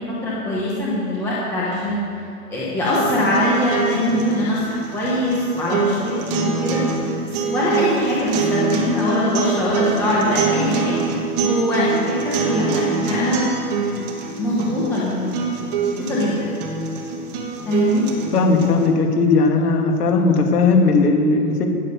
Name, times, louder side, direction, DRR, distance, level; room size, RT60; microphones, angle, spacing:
voice 1, 0.1-2.0 2.5-6.8 7.5-11.0 11.4-13.4 14.4-15.4 15.9-16.5 17.7-18.0, left 1 dB, 5° left, -7 dB, 1.0 m, -22 dB
sound 1, 2.9-18.9, right 5 dB, 25° right, 1.4 m, -25 dB
voice 2, 18.3-21.7, left 3 dB, 80° left, 2 dB, 2.5 m, -17 dB
18.5 x 7.5 x 6.7 m, 2.6 s
supercardioid pair, 180°, 45 cm